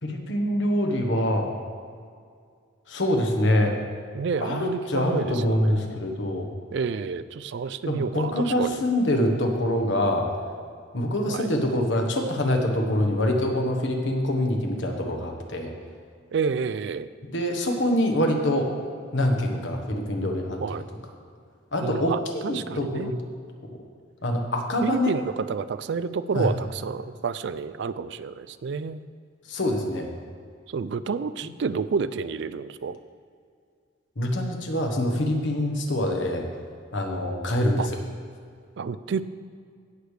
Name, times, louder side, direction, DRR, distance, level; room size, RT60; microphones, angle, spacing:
voice 1, 0.0-1.5 2.9-3.8 4.4-6.5 7.9-10.3 10.9-15.7 17.3-18.7 19.1-20.6 21.7-23.1 23.7-23.8 24.2-25.1 26.3-26.5 29.5-30.1 34.2-36.5 36.9-38.0, left 1 dB, 65° left, 3 dB, 1.3 m, -25 dB
voice 2, 4.1-6.0 6.7-8.8 11.3-11.5 16.3-17.1 20.6-20.8 21.8-23.1 24.8-29.0 30.7-33.0 37.8-37.9 38.8-39.2, right 5 dB, 60° right, 14 dB, 0.4 m, -29 dB
16.5 x 6.5 x 3.3 m, 2.2 s
head